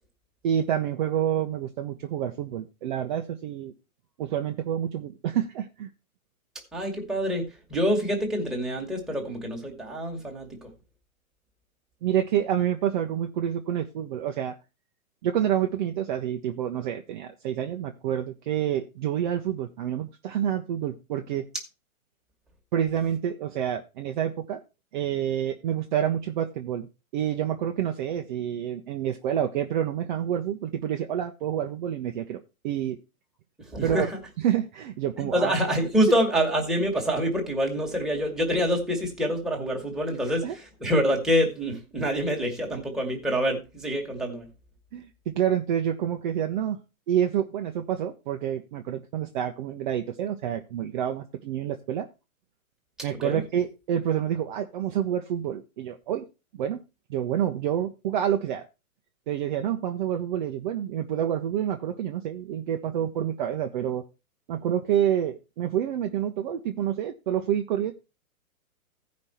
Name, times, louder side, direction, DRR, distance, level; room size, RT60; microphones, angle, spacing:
voice 1, 0.4-3.7 4.2-5.9 12.0-14.5 15.2-21.4 22.7-24.6 24.9-26.9 27.1-33.0 33.8-34.1 34.4-35.5 40.2-40.5 44.9-46.8 47.1-52.1 53.0-56.2 56.5-56.8 57.1-58.7 59.3-64.0 64.5-67.9, right 10 dB, 35° right, 0.8 m, -28 dB
voice 2, 6.7-7.4 7.7-10.7 33.6-34.1 35.2-44.5 53.2-53.4, equal, ahead, 1.7 m, -26 dB
15.0 x 5.3 x 4.2 m
hypercardioid pair, 150°, 43 cm